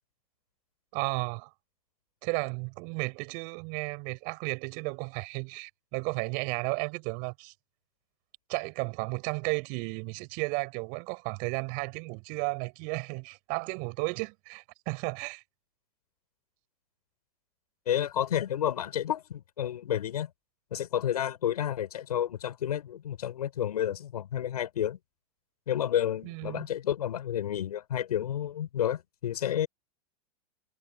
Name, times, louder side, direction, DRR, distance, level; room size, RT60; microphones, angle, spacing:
voice 1, 0.9-1.5 2.2-7.5 8.5-15.4 26.2-26.7, right 34 dB, 50° right, 7.0 m, -33 dB
voice 2, 17.9-20.3 20.7-25.0 25.7-29.7, left 10 dB, 85° left, 7.4 m, -30 dB
hypercardioid pair, 125°, 19 cm